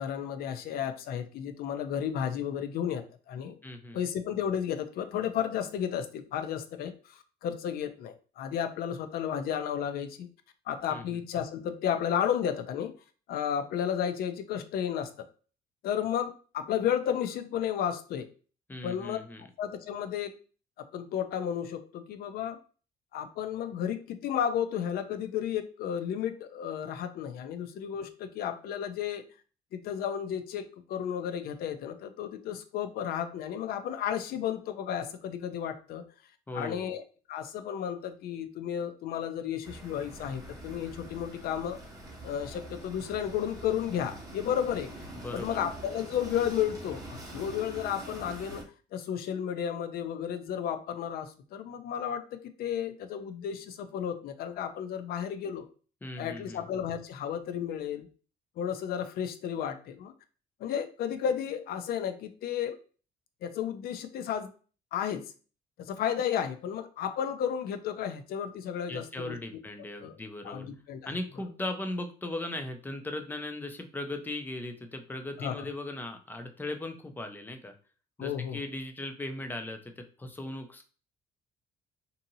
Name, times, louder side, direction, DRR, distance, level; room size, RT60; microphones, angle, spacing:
voice 1, 0.0-3.6 3.9-10.3 10.7-12.9 13.3-15.3 15.8-18.3 18.8-19.2 19.6-20.3 20.9-22.6 23.1-29.2 29.7-36.0 36.5-37.0 37.3-41.8 42.2-44.9 45.3-48.7 48.9-55.7 56.2-58.1 58.6-60.1 60.6-62.8 63.4-64.5 64.9-65.3 65.8-69.4 70.0-70.1 70.4-71.0 75.4-75.7 78.2-78.6, left 9 dB, 65° left, 9 dB, 0.4 m, -33 dB
voice 2, 3.6-4.0 10.9-11.2 18.7-19.5 36.5-36.9 45.2-45.7 56.0-56.6 68.9-70.7 71.0-77.7 78.2-80.8, left 2 dB, 10° left, 5 dB, 0.4 m, -38 dB
sound 1, 39.6-48.6, right 1 dB, 20° right, 0.9 m, -44 dB
2.7 x 2.6 x 2.7 m, 0.39 s
cardioid pair, 110°, 17 cm